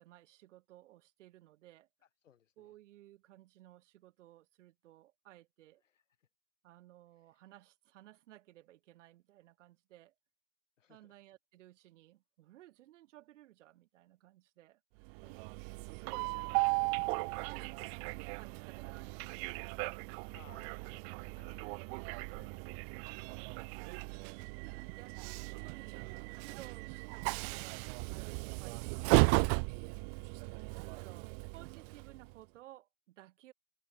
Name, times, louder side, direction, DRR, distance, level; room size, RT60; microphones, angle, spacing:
voice 1, 0.0-1.9 2.6-5.8 6.6-10.1 10.9-15.1 15.7-20.0 21.0-21.3 23.3-23.7 24.6-29.9 30.7-33.5, right 15 dB, 70° right, 4.3 m, -58 dB
voice 2, 2.0-2.7 5.8-6.3 10.8-11.1 15.2-15.4 17.5-17.7 20.3-22.8 23.1-23.4 24.3-24.8, left 9 dB, 85° left, 4.7 m, -65 dB
Train, 15.1-32.3, right 36 dB, 55° right, 0.5 m, -36 dB
hypercardioid pair, 80°, 37 cm